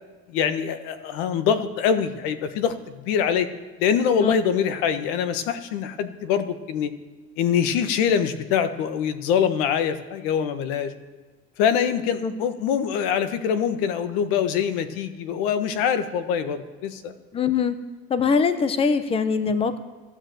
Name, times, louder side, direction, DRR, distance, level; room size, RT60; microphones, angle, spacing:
voice 1, 0.3-3.5 3.8-6.9 7.4-10.9 11.6-17.1, left 8 dB, 85° left, 10 dB, 1.4 m, -24 dB
voice 2, 17.3-17.7 18.1-19.8, left 5 dB, 20° left, 11 dB, 0.8 m, -22 dB
15.0 x 9.8 x 7.9 m, 1.4 s
cardioid pair, 155°, 30 cm